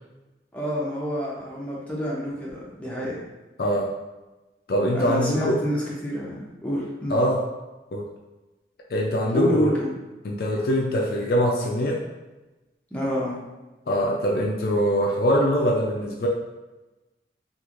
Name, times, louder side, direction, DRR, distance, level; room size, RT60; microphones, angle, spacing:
voice 1, 0.5-3.2 4.9-7.2 9.3-9.9 12.9-13.4, equal, 5° left, -6 dB, 0.6 m, -28 dB
voice 2, 3.6-3.9 4.7-5.6 7.1-7.4 7.9-8.1 8.9-9.7 10.2-12.0 13.9-16.3, equal, 55° left, -1 dB, 0.4 m, -23 dB
3.0 x 2.4 x 2.4 m, 1.1 s
head